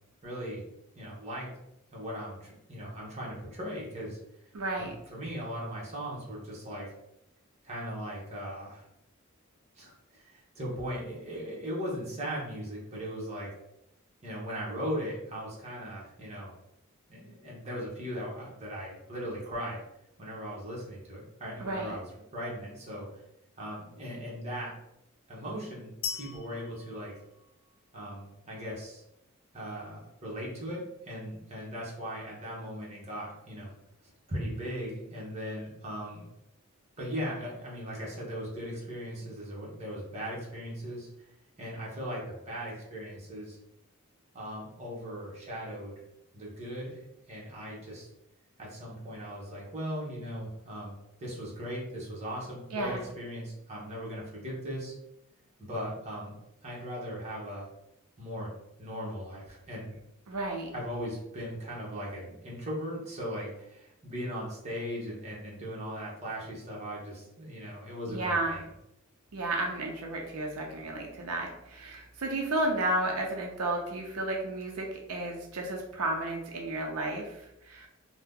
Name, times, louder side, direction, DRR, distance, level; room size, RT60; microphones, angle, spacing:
voice 1, 0.2-0.6 1.0-1.5 1.9-4.2 4.8-6.9 7.6-8.9 9.8-13.5 14.2-16.5 17.1-19.8 20.2-22.0 22.3-23.1 23.6-24.7 25.3-27.1 27.9-29.0 29.5-33.7 34.3-36.3 37.0-41.3 41.6-43.6 44.3-45.9 46.3-48.1 48.6-50.9 51.2-54.9 55.6-56.3 56.6-57.7 58.2-58.5 58.8-59.9 60.7-68.6, equal, 30° right, -4 dB, 0.9 m, -38 dB
voice 2, 4.5-4.9 21.6-22.0 52.7-53.0 60.3-60.7 68.1-68.6 69.3-77.9, right 2 dB, 80° right, 1 dB, 0.5 m, -32 dB
sound 1, 26.0-28.0, left 7 dB, 75° left, 0.4 m, -40 dB
2.7 x 2.1 x 3.5 m, 0.81 s
head